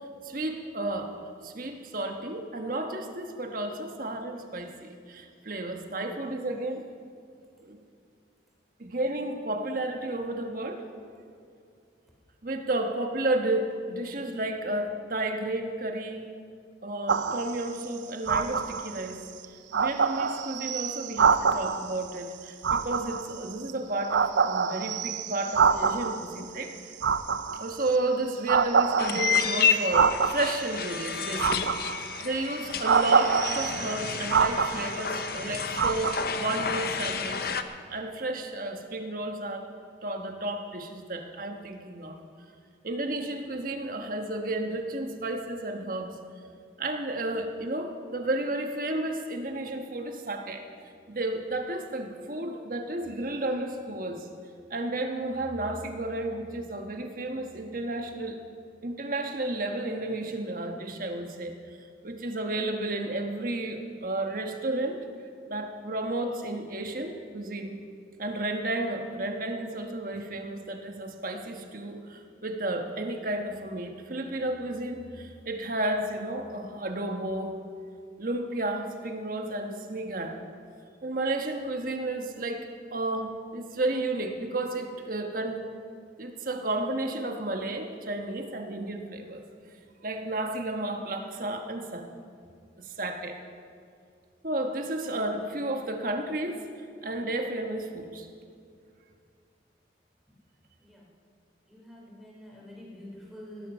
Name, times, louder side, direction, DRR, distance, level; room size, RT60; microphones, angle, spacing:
voice 1, 0.2-1.1 1.4-6.9 7.6-7.8 8.8-10.8 12.4-16.3 16.8-19.2 19.7-26.7 27.6-37.5 37.9-39.7 40.0-42.2 42.8-46.1 46.8-50.6 51.1-54.3 54.7-58.4 58.8-65.0 65.5-67.7 68.2-77.6 78.2-80.4 81.0-85.6 86.2-89.4 90.0-92.1 92.8-93.4 94.4-96.6 97.0-98.3, right 2 dB, 50° right, 4 dB, 1.3 m, -32 dB
sound 1, 17.1-17.7 18.3-19.0 19.4-19.5 19.7-21.9 22.6-23.7 24.1-26.3 26.9-27.9 28.5-30.7 31.4-32.2 32.8-35.2 35.8-36.3, right 6 dB, 85° right, 0.6 m, -25 dB
sound 2, 29.0-37.6, left 7 dB, 55° left, 0.7 m, -30 dB
voice 2, 101.7-103.7, equal, ahead, -4 dB, 3.2 m, -46 dB
18.0 x 11.5 x 5.7 m, 2.3 s
head